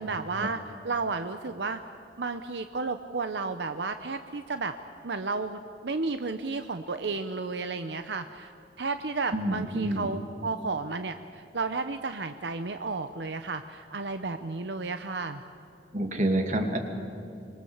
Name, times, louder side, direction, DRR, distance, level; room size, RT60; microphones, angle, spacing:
voice 1, 0.0-1.8 2.2-4.7 5.0-8.5 8.8-15.4, right 4 dB, 80° right, 9 dB, 0.8 m, -32 dB
voice 2, 9.3-10.1 15.9-16.8, right 1 dB, 45° right, 4 dB, 2.7 m, -28 dB
26.0 x 22.0 x 7.2 m, 2.6 s
head